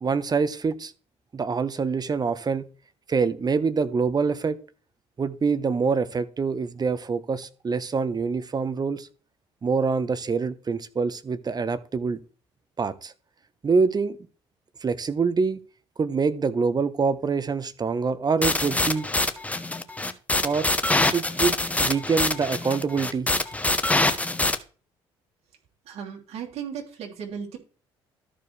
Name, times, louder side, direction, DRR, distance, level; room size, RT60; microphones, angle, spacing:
voice 1, 0.0-0.9 1.3-2.7 3.1-4.6 5.2-9.1 9.6-12.2 12.8-13.1 13.6-14.2 14.8-15.6 16.0-19.1 20.4-20.7 21.1-23.3, right 5 dB, 35° right, 13 dB, 0.9 m, -25 dB
sound 1, 18.4-24.6, left 2 dB, 10° left, 1.0 m, -24 dB
voice 2, 25.8-27.6, right 7 dB, 60° right, 0 dB, 2.9 m, -36 dB
13.5 x 4.7 x 3.3 m, 0.39 s
hypercardioid pair, 60°, 12 cm